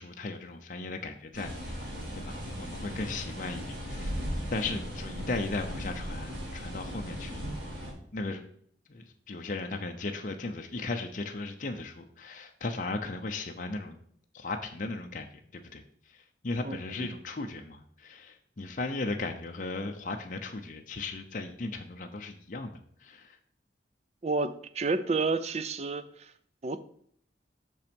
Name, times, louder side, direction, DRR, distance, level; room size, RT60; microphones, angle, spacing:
voice 1, 0.0-4.2 4.5-7.5 8.1-8.4 8.9-14.0 14.3-23.4, left 3 dB, 45° left, 4 dB, 0.6 m, -37 dB
sound 1, 1.3-7.9, equal, 80° right, 3.5 m, -37 dB
voice 2, 16.6-17.1 24.2-26.3 26.6-26.8, right 3 dB, 35° right, 12 dB, 0.4 m, -30 dB
6.2 x 5.4 x 5.2 m, 0.64 s
head